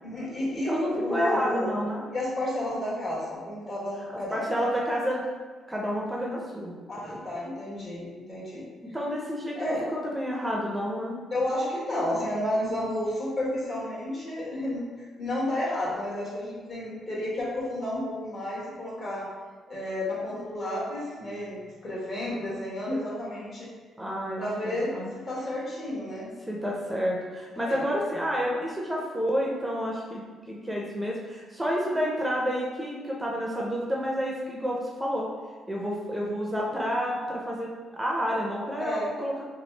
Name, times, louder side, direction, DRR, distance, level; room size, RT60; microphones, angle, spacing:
voice 1, 0.0-1.8 2.1-4.5 6.9-8.6 9.5-9.8 11.3-19.2 19.7-23.7 24.4-26.3 27.6-27.8 30.4-30.8 38.3-38.4 38.8-39.1, left 1 dB, 45° left, -6 dB, 1.3 m, -31 dB
voice 2, 0.7-2.0 4.3-5.2 5.7-6.7 7.0-7.2 8.8-11.2 24.0-25.1 26.5-30.2 30.5-35.3 35.7-39.4, equal, 10° right, -3 dB, 0.5 m, -29 dB
3.0 x 2.3 x 3.2 m, 1.5 s
cardioid pair, 90°, 0 cm